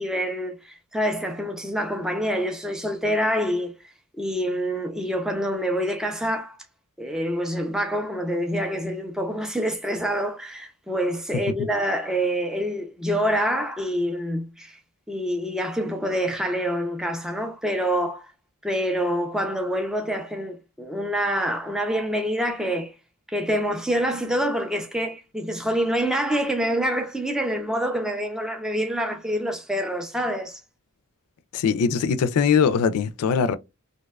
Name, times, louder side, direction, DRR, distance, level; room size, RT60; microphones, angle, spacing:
voice 1, 0.0-3.7 4.2-6.6 7.0-14.8 15.1-18.3 18.6-22.9 23.3-30.6, equal, 5° right, 0.3 m, -26 dB
voice 2, 31.5-33.6, left 6 dB, 80° left, 0.3 m, -21 dB
2.6 x 2.1 x 2.2 m
head